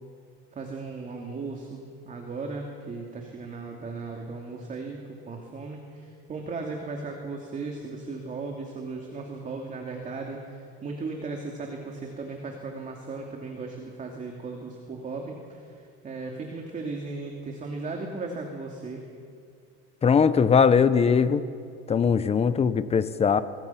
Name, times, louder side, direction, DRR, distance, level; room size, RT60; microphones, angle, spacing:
voice 1, 0.5-5.0 5.3-19.0, right 3 dB, 25° right, 1 dB, 2.7 m, -36 dB
voice 2, 20.0-21.4 21.9-23.4, left 6 dB, 20° left, 13 dB, 0.9 m, -20 dB
26.0 x 22.5 x 5.9 m, 2.3 s
supercardioid pair, 130°, 29 cm